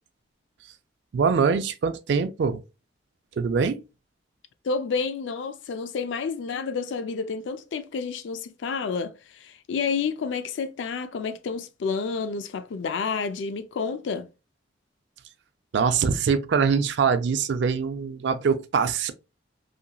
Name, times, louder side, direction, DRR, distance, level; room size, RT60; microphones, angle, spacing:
voice 1, 1.1-2.6 3.4-3.8 15.7-19.1, right 5 dB, 65° right, 0.3 m, -23 dB
voice 2, 4.6-14.3, left 5 dB, 70° left, 0.4 m, -30 dB
2.8 x 2.5 x 2.2 m
head